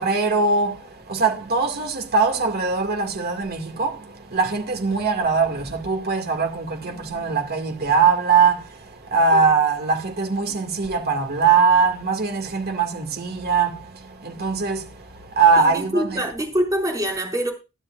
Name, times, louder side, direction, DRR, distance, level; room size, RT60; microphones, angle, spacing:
voice 1, 0.0-16.2, right 5 dB, 50° right, 2.1 m, -21 dB
voice 2, 15.6-17.5, right 1 dB, 15° right, 5.5 m, -25 dB
22.0 x 12.0 x 2.5 m
head